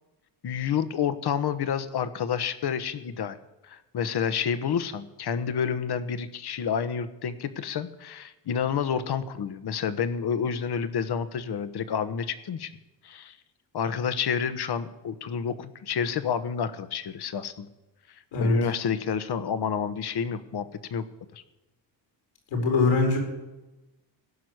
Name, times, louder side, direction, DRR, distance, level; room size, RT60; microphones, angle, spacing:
voice 1, 0.4-3.4 3.7-12.7 13.0-13.3 13.7-17.7 18.4-21.0 21.3-21.4, left 7 dB, 55° left, 13 dB, 1.2 m, -29 dB
voice 2, 22.5-23.2, left 3 dB, 90° left, 2 dB, 4.7 m, -22 dB
16.5 x 6.1 x 9.5 m, 1.0 s
cardioid pair, 80°, 46 cm